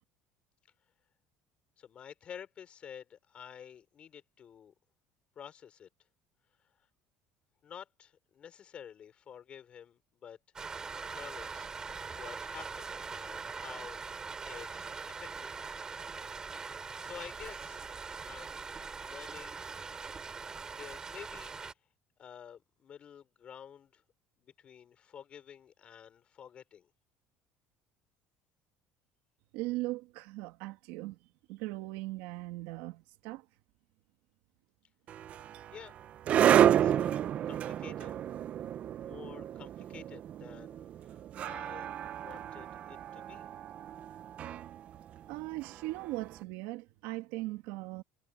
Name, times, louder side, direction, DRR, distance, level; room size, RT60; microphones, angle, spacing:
voice 1, 1.8-4.7 5.3-5.9 7.6-10.4 10.7-11.7 12.1-14.0 14.4-15.7 16.7-17.9 18.2-18.7 19.0-19.7 20.7-21.7 22.2-24.0 24.4-26.9 35.7-35.9 36.5-38.1 39.0-43.5, left 8 dB, 30° left, 4.7 m, -50 dB
Rain, 10.6-21.7, right 5 dB, 15° right, 4.2 m, -42 dB
voice 2, 29.5-31.2 31.5-33.4 45.3-48.0, right 20 dB, 80° right, 2.1 m, -39 dB
sound 1, 35.1-46.2, right 10 dB, 35° right, 0.4 m, -31 dB
cardioid pair, 175°, 4 cm